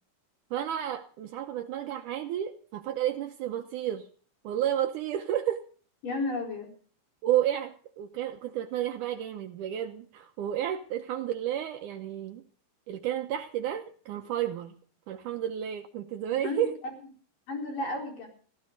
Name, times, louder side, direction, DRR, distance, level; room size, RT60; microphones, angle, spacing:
voice 1, 0.5-4.1 4.4-5.6 7.2-12.4 12.9-14.7 15.1-16.7, right 11 dB, 85° right, 5 dB, 1.8 m, -31 dB
voice 2, 6.0-6.7 16.4-16.7 17.5-18.3, left 2 dB, 50° left, 1 dB, 5.6 m, -32 dB
15.5 x 13.0 x 5.2 m, 0.43 s
omnidirectional pair, 4.8 m